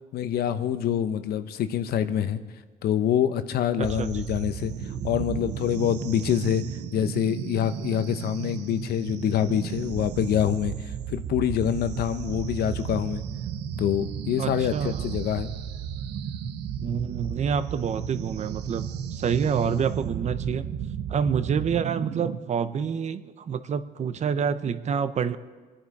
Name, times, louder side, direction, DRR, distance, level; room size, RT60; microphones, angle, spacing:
voice 1, 0.1-2.4 2.8-4.7 5.0-6.6 6.9-13.2 13.8-15.5, left 10 dB, 70° left, 11 dB, 0.9 m, -26 dB
voice 2, 3.8-4.1 14.4-15.1 16.8-20.7 21.1-25.4, right 7 dB, 40° right, 12 dB, 0.8 m, -27 dB
sound 1, 3.8-22.4, right 8 dB, 80° right, 1.1 m, -34 dB
26.0 x 10.0 x 4.8 m, 1.4 s
cardioid pair, 110°, 17 cm